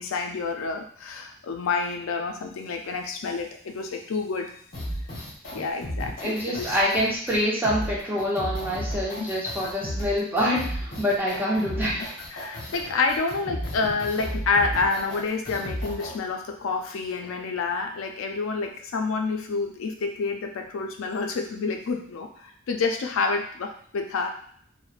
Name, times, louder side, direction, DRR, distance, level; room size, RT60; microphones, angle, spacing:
voice 1, 0.0-4.5 5.5-6.8 9.2-9.3 12.3-24.3, left 4 dB, 80° left, 4 dB, 0.4 m, -28 dB
sound 1, 4.7-16.2, equal, 45° left, 0.8 m, -34 dB
voice 2, 6.2-12.0, equal, 10° right, -6 dB, 0.6 m, -26 dB
3.1 x 2.1 x 2.4 m, 0.62 s
head